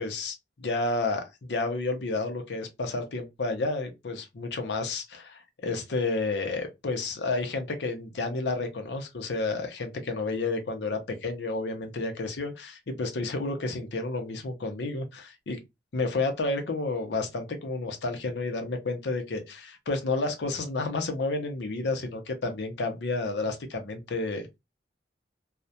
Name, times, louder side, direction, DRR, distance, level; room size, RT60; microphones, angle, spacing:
voice 1, 0.0-15.6 15.9-24.6, left 3 dB, 70° left, 0.6 m, -31 dB
2.3 x 2.1 x 2.6 m
head